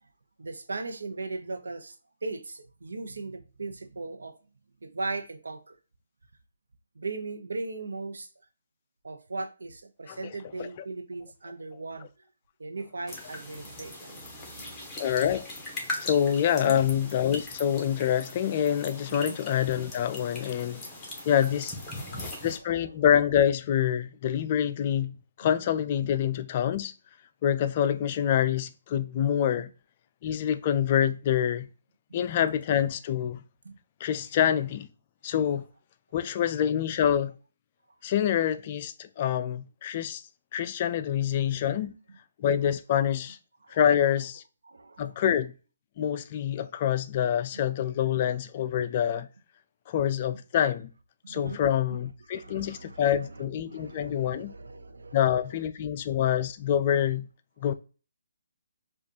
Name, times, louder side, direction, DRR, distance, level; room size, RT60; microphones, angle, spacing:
voice 1, 0.4-2.0 2.2-4.3 4.8-5.8 6.9-8.3 9.0-12.1 12.6-15.0 16.6-16.8 19.1-19.4 20.8-21.3 21.9-22.5 26.0-26.1 33.6-33.8 41.8-41.9 43.6-43.8 44.6-45.1 47.5-47.6 51.2-51.6 52.3-55.2 55.9-56.0, right 3 dB, 75° right, 0.7 m, -38 dB
sound 1, 13.1-22.6, left 2 dB, 10° left, 1.2 m, -40 dB
voice 2, 15.0-15.5 16.0-20.8 21.3-21.8 22.4-26.9 27.4-29.7 30.2-31.7 32.1-33.4 34.0-34.9 35.2-35.6 36.1-37.4 38.0-40.2 40.5-41.9 42.4-43.4 43.7-44.4 45.0-45.5 46.0-49.3 49.9-50.9 51.3-54.5 55.1-57.3 57.6-57.7, left 9 dB, 40° left, 0.4 m, -26 dB
5.0 x 2.5 x 2.7 m
figure-of-eight pair, 145°, 0 cm